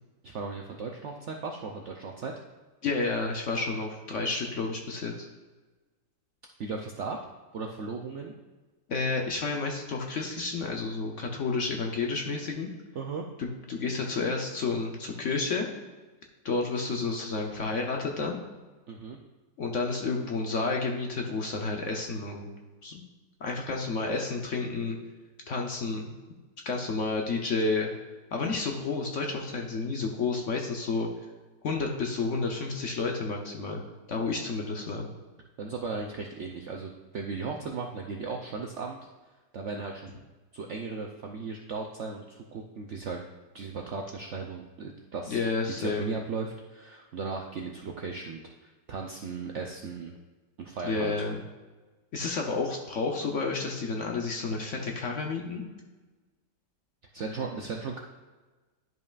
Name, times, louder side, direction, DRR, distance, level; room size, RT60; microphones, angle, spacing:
voice 1, 0.2-2.3 6.6-7.2 7.5-8.3 12.9-13.2 18.9-19.2 35.6-39.0 39.5-40.1 40.5-43.2 43.5-45.4 45.8-50.1 50.6-51.3 57.1-58.0, right 4 dB, 65° right, 1 dB, 0.7 m, -36 dB
voice 2, 2.8-5.3 8.9-12.7 13.4-15.7 16.4-18.4 19.6-22.5 22.8-23.1 23.4-25.0 25.5-26.1 26.7-27.9 28.3-31.1 31.6-33.8 34.1-35.1 45.3-46.1 50.8-51.4 52.1-55.6, left 3 dB, 55° left, 1 dB, 0.9 m, -30 dB
11.0 x 5.3 x 2.4 m, 1.3 s
omnidirectional pair, 1.9 m